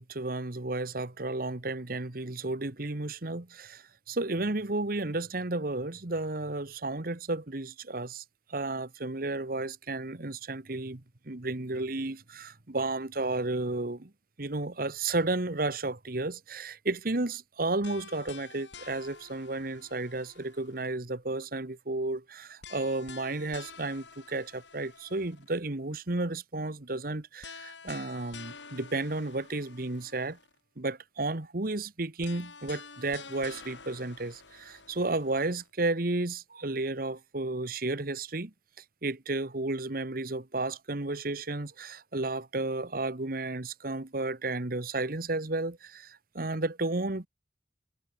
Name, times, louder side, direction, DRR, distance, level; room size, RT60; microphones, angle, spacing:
voice 1, 0.0-8.2 8.5-14.1 14.4-30.4 30.8-38.5 39.0-47.3, right 2 dB, 50° right, 1.4 m, -33 dB
sound 1, 17.8-21.0 22.6-25.6 27.4-30.6 32.2-35.7, left 5 dB, 90° left, 7.3 m, -49 dB
head